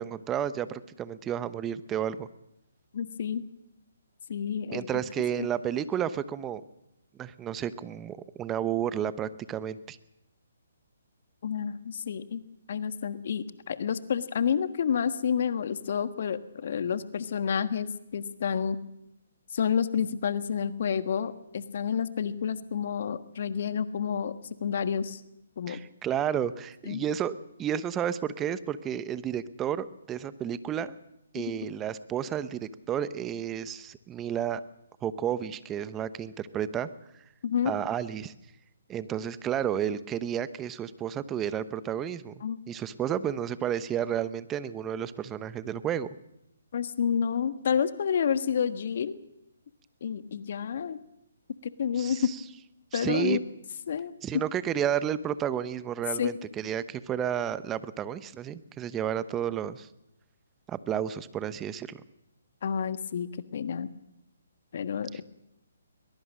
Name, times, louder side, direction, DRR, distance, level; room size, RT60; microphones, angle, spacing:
voice 1, 0.0-2.3 4.7-6.6 7.2-10.0 25.7-30.9 31.3-34.6 35.0-36.9 37.6-38.3 38.9-46.1 52.0-52.4 52.9-53.4 54.2-59.9 60.7-62.0 65.1-65.2, right 9 dB, 15° right, 15 dB, 1.0 m, -31 dB
voice 2, 2.9-3.4 4.3-5.0 5.4-5.5 11.4-12.4 12.7-18.8 19.5-24.3 24.6-25.2 25.6-25.8 26.8-27.0 31.3-31.7 37.4-37.8 42.4-42.6 46.7-49.2 50.0-51.0 51.8-52.3 52.9-53.4 53.9-54.1 56.1-56.3 62.6-63.9 64.7-65.2, left 7 dB, 55° left, 12 dB, 1.4 m, -29 dB
22.0 x 21.0 x 6.4 m, 0.86 s
figure-of-eight pair, 140°, 0 cm